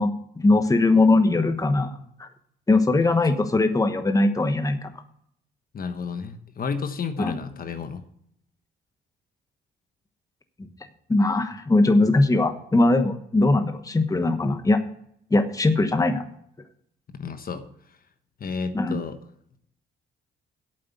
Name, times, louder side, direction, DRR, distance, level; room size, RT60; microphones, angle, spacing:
voice 1, 0.0-2.3 2.7-4.9 7.2-7.4 11.1-14.8 15.3-16.2 18.7-19.0, left 2 dB, 15° left, 8 dB, 1.1 m, -21 dB
voice 2, 5.7-8.0 17.1-17.6 18.4-19.2, left 5 dB, 45° left, 9 dB, 1.2 m, -32 dB
8.5 x 7.7 x 8.3 m, 0.71 s
cardioid pair, 90°, 20 cm